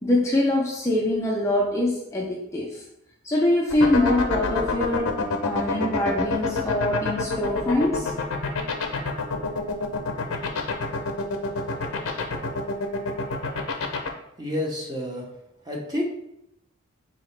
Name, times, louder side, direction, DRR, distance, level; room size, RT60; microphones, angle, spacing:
voice 1, 0.0-2.8 3.2-5.2 5.4-8.1, left 1 dB, 15° left, -3 dB, 0.4 m, -24 dB
sound 1, 3.7-14.1, left 4 dB, 85° left, 0.6 m, -26 dB
voice 2, 14.4-15.4 15.6-16.0, left 1 dB, 20° right, -2 dB, 0.7 m, -29 dB
3.9 x 2.8 x 3.2 m, 0.82 s
head